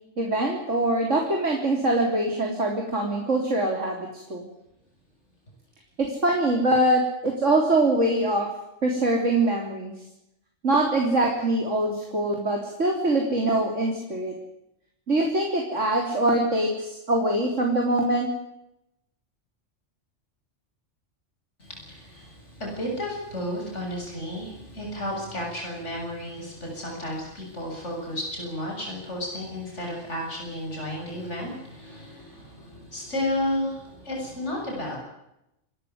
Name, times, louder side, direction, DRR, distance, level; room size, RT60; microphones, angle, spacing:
voice 1, 0.2-4.4 6.0-8.5 8.8-9.9 10.6-14.3 15.1-18.3, right 1 dB, 80° right, 1 dB, 4.0 m, -23 dB
voice 2, 21.6-35.0, left 1 dB, 70° left, 0 dB, 7.6 m, -32 dB
28.5 x 13.5 x 9.5 m, 0.85 s
omnidirectional pair, 1.2 m